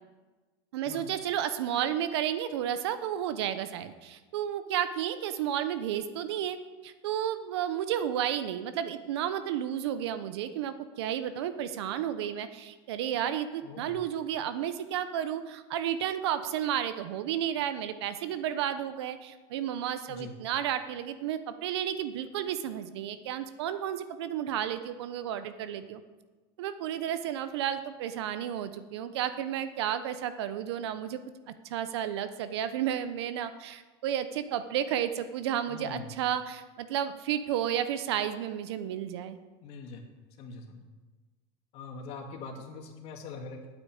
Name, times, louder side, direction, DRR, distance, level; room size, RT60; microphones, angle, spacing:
voice 1, 0.7-26.0 26.6-31.2 31.6-39.4, right 10 dB, 85° right, 11 dB, 1.0 m, -32 dB
voice 2, 13.6-14.0 20.1-20.3 35.7-36.1 39.6-40.0 40.4-40.8 41.7-43.7, left 4 dB, 50° left, 3 dB, 2.2 m, -43 dB
9.3 x 8.4 x 8.5 m, 1.3 s
supercardioid pair, 145°, 13 cm